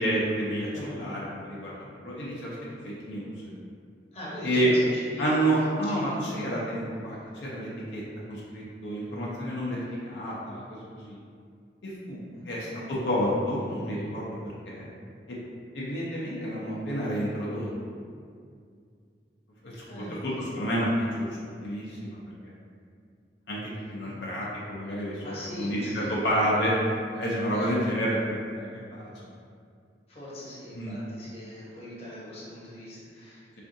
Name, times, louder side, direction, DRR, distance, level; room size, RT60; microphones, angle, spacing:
voice 1, 0.0-0.7 1.0-2.6 2.8-3.5 4.4-4.7 5.2-7.2 7.4-8.0 8.3-11.2 11.8-14.2 14.7-14.9 15.3-15.4 15.7-17.7 19.6-21.3 21.6-22.2 23.5-23.6 23.9-26.7 27.1-29.1 30.7-31.0, equal, 75° left, -6 dB, 0.5 m, -29 dB
voice 2, 4.1-5.5 5.9-6.4 12.3-12.8 19.8-20.6 24.0-24.2 25.2-26.3 27.5-27.8 30.1-33.4, left 1 dB, 35° left, -8 dB, 0.8 m, -41 dB
3.5 x 2.5 x 2.5 m, 2.2 s
head